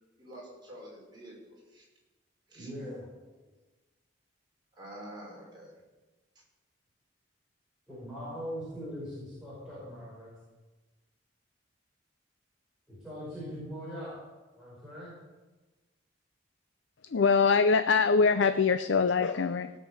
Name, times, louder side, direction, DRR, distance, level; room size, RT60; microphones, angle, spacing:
voice 1, 0.2-1.8 2.5-2.7 4.7-5.8, right 1 dB, 25° right, -4 dB, 5.2 m, -47 dB
voice 2, 2.5-3.1 7.9-10.4 12.9-14.2 14.5-15.1, equal, 5° right, -10 dB, 5.2 m, -41 dB
voice 3, 17.1-19.7, left 5 dB, 70° left, 11 dB, 0.5 m, -23 dB
17.0 x 6.7 x 8.2 m, 1.2 s
head